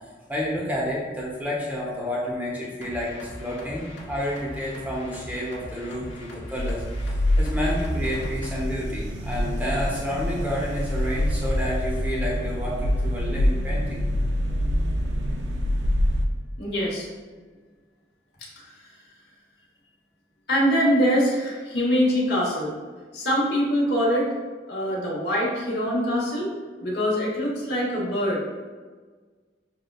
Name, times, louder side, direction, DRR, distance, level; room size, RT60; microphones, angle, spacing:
voice 1, 0.3-14.0, equal, 10° right, -4 dB, 0.8 m, -30 dB
sound 1, 2.8-8.6, left 1 dB, 85° left, 0.9 m, -41 dB
sound 2, 6.5-16.3, equal, 80° right, 0.4 m, -26 dB
voice 2, 16.6-17.1 18.6-18.7 20.5-22.7 23.1-24.3 24.7-26.5 26.8-28.5, equal, 60° left, -4 dB, 1.1 m, -23 dB
6.7 x 2.3 x 2.3 m, 1.4 s
head